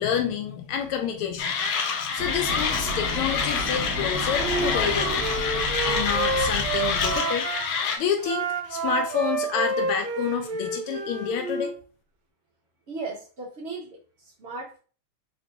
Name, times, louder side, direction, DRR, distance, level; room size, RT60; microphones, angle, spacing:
voice 1, 0.0-1.5 2.1-5.2 5.8-7.5 8.0-11.7, left 8 dB, 90° left, 4 dB, 1.5 m, -28 dB
Mechanisms, 1.4-8.0, left 5 dB, 70° left, 1.2 m, -27 dB
sound 1, 2.2-7.2, left 1 dB, 50° right, 1.6 m, -32 dB
Wind instrument woodwind instrument, 4.3-7.6 8.2-11.8, right 3 dB, 65° right, 1.3 m, -29 dB
voice 2, 12.9-14.8, right 3 dB, 80° right, -4 dB, 0.6 m, -37 dB
4.8 x 2.6 x 2.6 m, 0.38 s
omnidirectional pair, 2.4 m